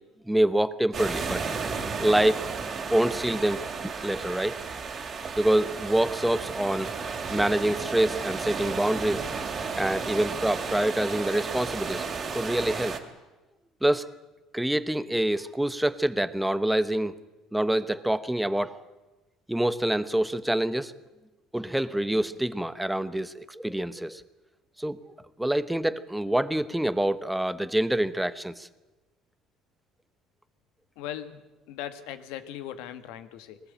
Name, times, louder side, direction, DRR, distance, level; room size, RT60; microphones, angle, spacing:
voice 1, 0.3-1.5 2.0-2.5 2.9-4.6 5.4-6.9 7.3-9.3 9.7-12.1 12.3-13.0 13.8-14.1 14.5-17.1 17.5-18.8 19.5-20.9 21.5-24.2 24.8-25.0 25.4-28.7, right 1 dB, 5° right, 14 dB, 0.9 m, -26 dB
sound 1, 0.9-13.0, right 5 dB, 35° right, 2.7 m, -33 dB
voice 2, 31.0-31.4 31.7-33.6, left 11 dB, 90° left, 11 dB, 1.7 m, -38 dB
22.0 x 19.5 x 8.7 m, 1.1 s
cardioid pair, 135°, 0 cm